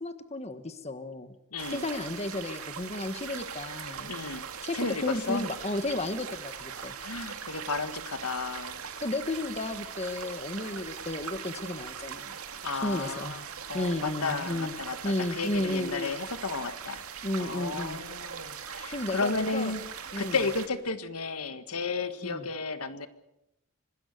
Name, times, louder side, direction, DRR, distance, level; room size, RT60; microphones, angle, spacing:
voice 1, 0.0-1.3 1.7-4.1 4.6-6.9 9.0-12.3 12.8-13.3 13.7-14.7 15.0-16.1 17.2-18.0 18.9-19.7 20.1-20.4 22.2-22.5, left 2 dB, 30° left, 10 dB, 1.4 m, -33 dB
voice 2, 1.5-1.8 4.0-4.4 4.7-5.4 7.0-8.8 12.6-13.4 13.7-17.0 17.4-19.8 20.2-23.1, left 4 dB, 80° left, 10 dB, 1.6 m, -33 dB
sound 1, 1.6-20.7, right 7 dB, 75° right, 2.3 m, -40 dB
25.5 x 20.0 x 6.7 m, 0.89 s
head